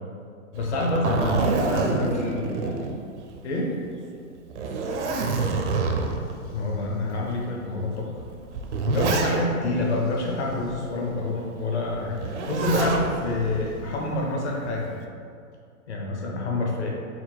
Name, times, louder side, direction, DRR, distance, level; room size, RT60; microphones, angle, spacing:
voice 1, 0.5-2.1 2.4-2.5 3.4-3.7 6.5-8.1 8.8-12.2 12.5-14.9 15.9-16.9, left 2 dB, 50° left, -1 dB, 0.8 m, -27 dB
Zipper (clothing), 0.6-3.5 3.8-3.9 4.5-6.3 7.1-7.2 8.2-9.7 12.2-13.1 14.4-14.9, right 4 dB, 55° right, 0.5 m, -26 dB
voice 2, 2.0-2.9 4.5-5.6, equal, 5° left, -17 dB, 0.4 m, -36 dB
sound 1, 4.9-14.4, left 2 dB, 80° left, 1.0 m, -43 dB
4.3 x 2.1 x 4.2 m, 2.3 s
hypercardioid pair, 160°, 43 cm